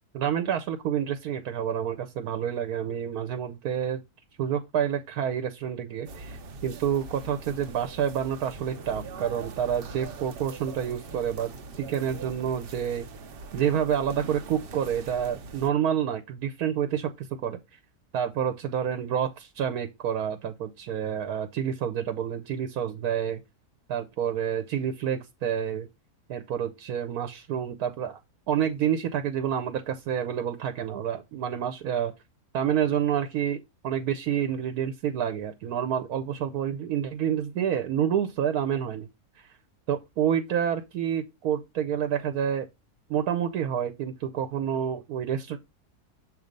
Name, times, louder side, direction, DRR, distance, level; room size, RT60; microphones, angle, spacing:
voice 1, 0.1-4.0 4.4-13.1 13.5-17.6 18.1-23.4 23.9-25.9 26.3-28.2 28.5-32.1 32.5-33.6 33.8-39.1 39.3-39.5 39.9-42.7 43.1-45.6, right 9 dB, 70° right, 1.1 m, -28 dB
sound 1, 6.1-15.7, right 3 dB, 55° right, 0.6 m, -42 dB
7.4 x 3.0 x 5.1 m
omnidirectional pair, 1.7 m